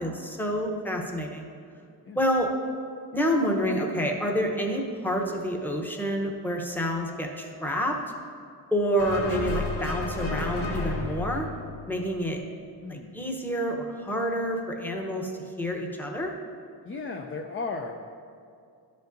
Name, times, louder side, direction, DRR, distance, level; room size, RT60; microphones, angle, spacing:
voice 1, 0.0-1.5 2.1-2.5 3.1-8.0 8.7-11.5 11.9-12.4 12.9-15.3 15.6-16.3, equal, 5° left, 1 dB, 0.8 m, -28 dB
sound 1, 9.0-12.5, left 3 dB, 65° left, 1.7 m, -32 dB
voice 2, 12.8-13.2 16.8-18.0, left 3 dB, 30° left, 3 dB, 0.4 m, -35 dB
12.0 x 5.3 x 2.6 m, 2.4 s
wide cardioid pair, 95°, 43 cm